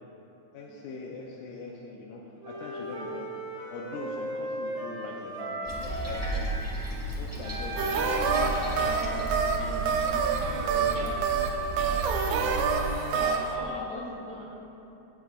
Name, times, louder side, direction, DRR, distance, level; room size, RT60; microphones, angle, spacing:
voice 1, 0.5-3.4 3.7-6.7 7.1-10.3 10.6-11.8, left 3 dB, 85° left, -2 dB, 2.3 m, -42 dB
Wind instrument woodwind instrument, 2.4-6.6 7.4-11.3, equal, 60° right, 2.2 m, -36 dB
Toilet flush, 5.6-12.8, right 2 dB, 15° right, 1.0 m, -34 dB
sound 1, 7.8-13.6, right 5 dB, 75° right, 1.7 m, -28 dB
voice 2, 13.1-14.4, left 2 dB, 65° left, -7 dB, 3.3 m, -39 dB
16.0 x 8.1 x 2.5 m, 2.8 s
omnidirectional pair, 3.5 m